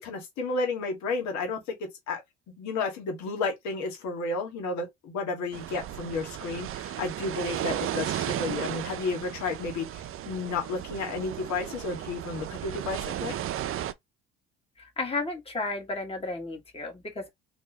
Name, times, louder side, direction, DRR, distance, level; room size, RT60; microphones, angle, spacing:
voice 1, 0.0-1.6 2.1-2.2 2.6-13.4, left 3 dB, 65° left, 1.6 m, -32 dB
sound 1, 5.5-13.9, right 11 dB, 45° right, 0.5 m, -35 dB
voice 2, 14.8-17.3, left 3 dB, 20° left, 1.6 m, -33 dB
3.1 x 2.9 x 4.0 m
hypercardioid pair, 65°, 31 cm